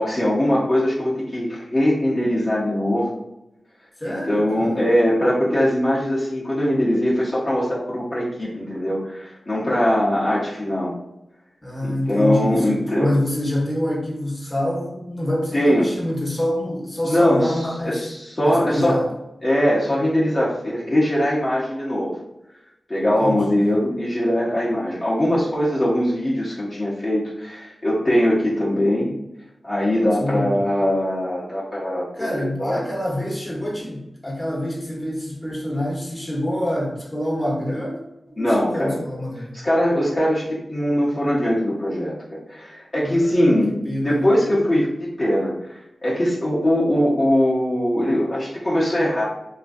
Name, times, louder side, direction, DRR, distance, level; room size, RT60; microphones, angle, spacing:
voice 1, 0.0-3.1 4.0-10.9 11.8-13.1 15.5-15.9 17.0-17.6 17.8-19.0 19.4-22.1 22.9-29.1 29.6-32.8 38.4-39.0 39.5-43.8 44.0-45.5 46.0-49.2, equal, 40° left, -8 dB, 0.9 m, -21 dB
voice 2, 4.0-4.7 11.6-18.1 18.4-19.1 23.2-23.7 30.2-30.6 32.1-39.6 43.0-44.3, left 1 dB, 15° left, -4 dB, 1.1 m, -26 dB
2.9 x 2.5 x 2.6 m, 0.90 s
cardioid pair, 45°, 0 cm